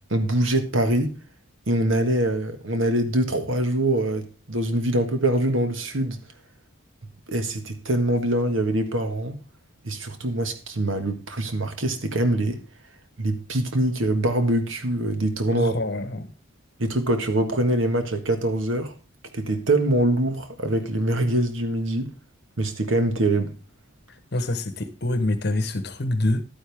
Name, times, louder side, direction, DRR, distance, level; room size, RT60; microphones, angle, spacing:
voice 1, 0.1-1.1 1.7-6.2 7.3-9.4 9.8-12.6 13.2-15.7 16.8-18.9 19.3-22.1 22.6-23.5, right 1 dB, 75° right, 1.7 m, -24 dB
voice 2, 15.5-16.3 24.1-26.4, left 1 dB, 55° left, 1.1 m, -26 dB
11.5 x 9.7 x 3.5 m
head